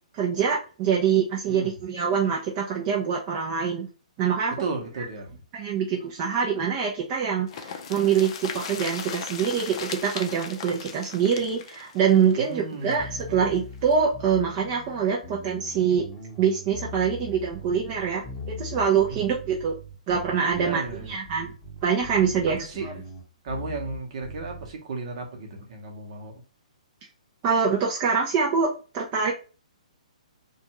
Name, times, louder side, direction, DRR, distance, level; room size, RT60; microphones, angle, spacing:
voice 1, 0.1-3.9 4.2-4.6 5.5-16.1 16.4-19.7 20.1-21.5 21.8-22.9 27.4-29.3, right 7 dB, 30° right, -2 dB, 0.5 m, -25 dB
voice 2, 4.6-5.4 12.4-13.4 19.1-19.2 20.6-21.2 22.6-22.8 23.4-26.3, right 3 dB, 50° right, 2 dB, 0.9 m, -34 dB
sound 1, 7.5-13.2 13.5-13.6 13.9-14.0, left 7 dB, 45° left, 0.5 m, -37 dB
sound 2, 13.0-24.8, left 1 dB, 10° left, 1.0 m, -40 dB
2.5 x 2.3 x 2.9 m, 0.35 s
hypercardioid pair, 140°, 4 cm